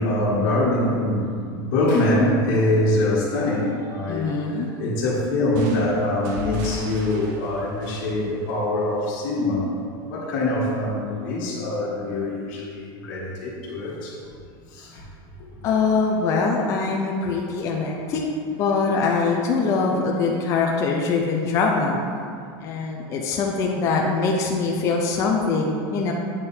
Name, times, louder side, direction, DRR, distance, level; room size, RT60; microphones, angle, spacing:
voice 1, 0.0-9.7 10.0-14.2 14.7-15.0 15.6-15.7 23.1-23.4, left 1 dB, 50° left, -8 dB, 1.5 m, -24 dB
voice 2, 4.1-4.7 15.6-18.2 18.6-22.0 22.6-26.1, left 4 dB, 25° left, 0 dB, 0.4 m, -23 dB
sound 1, 5.5-9.2, left 1 dB, 50° right, 0.7 m, -36 dB
8.2 x 3.5 x 4.4 m, 2.3 s
supercardioid pair, 175°, 12 cm